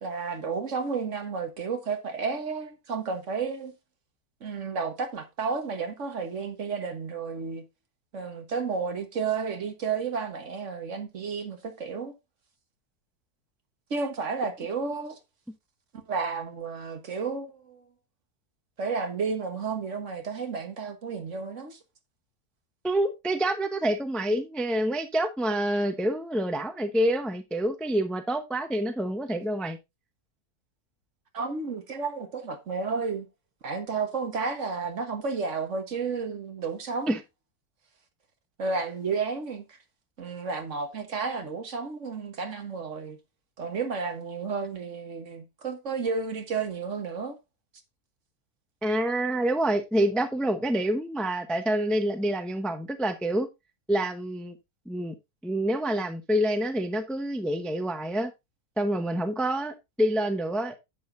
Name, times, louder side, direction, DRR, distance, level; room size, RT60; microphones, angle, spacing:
voice 1, 0.0-3.7 4.4-7.6 8.1-12.1 13.9-15.2 16.1-17.8 18.8-21.8 31.3-33.3 33.6-37.2 38.6-39.8 40.2-43.2 43.6-47.4, right 5 dB, 55° right, 1.6 m, -32 dB
voice 2, 22.8-29.8 37.1-37.2 48.8-53.5 53.9-54.6 54.9-55.1 55.4-58.3 58.8-60.8, right 1 dB, ahead, 0.6 m, -27 dB
10.5 x 8.0 x 2.6 m
omnidirectional pair, 1.6 m